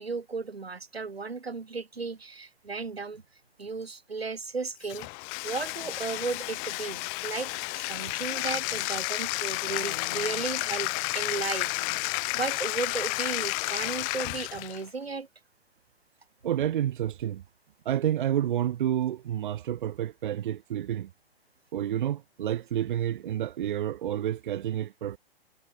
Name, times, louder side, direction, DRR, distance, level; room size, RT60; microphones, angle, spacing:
voice 1, 0.0-3.2 3.6-5.1 5.4-7.5 7.9-11.7 12.0-15.3, right 4 dB, 85° right, 2.4 m, -35 dB
Bathtub (filling or washing), 4.8-14.8, left 40 dB or more, 30° left, 1.4 m, -31 dB
sound 1, 9.7-10.6 11.7-12.2 13.1-13.3 13.6-13.9 14.4-14.5, left 9 dB, 60° left, 4.2 m, -46 dB
voice 2, 16.4-17.4 17.8-21.1 21.7-25.2, right 11 dB, 55° right, 1.0 m, -29 dB
figure-of-eight pair, 125°, 30 cm